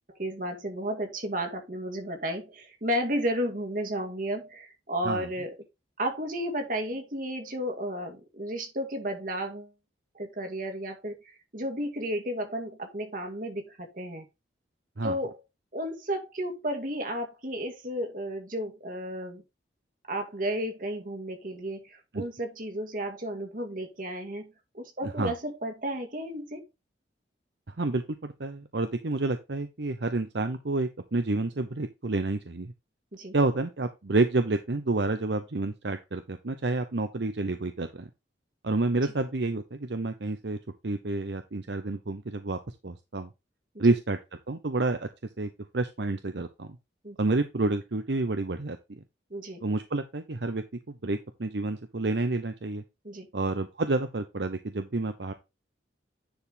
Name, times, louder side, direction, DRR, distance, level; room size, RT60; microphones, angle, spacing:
voice 1, 0.1-5.5 6.0-9.7 10.1-14.3 15.0-15.4 15.7-19.4 20.1-26.6 33.1-33.3 43.7-43.9 47.0-47.2 49.3-49.6 53.0-53.3, equal, 45° right, 2.2 m, -33 dB
voice 2, 25.0-25.3 27.8-32.7 33.3-38.1 38.6-40.6 40.8-43.3 43.8-44.2 44.5-45.1 45.4-46.7 47.2-49.0 49.6-52.8 53.3-55.3, right 2 dB, 70° right, 0.8 m, -29 dB
10.5 x 4.8 x 3.6 m
head